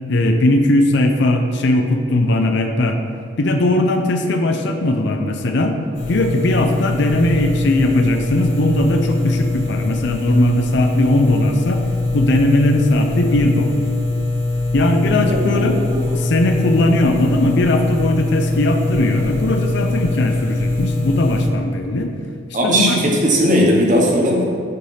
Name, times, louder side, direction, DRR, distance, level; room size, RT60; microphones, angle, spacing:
voice 1, 0.1-3.0 3.4-5.8 6.1-11.8 12.1-13.7 14.7-15.8 16.1-22.1 22.6-23.0, left 1 dB, 60° left, 5 dB, 0.5 m, -18 dB
sound 1, 5.9-21.5, left 2 dB, 40° left, 1.4 m, -22 dB
voice 2, 15.2-16.2 22.5-24.4, equal, 40° right, -2 dB, 1.1 m, -17 dB
6.7 x 3.2 x 5.6 m, 2.4 s
head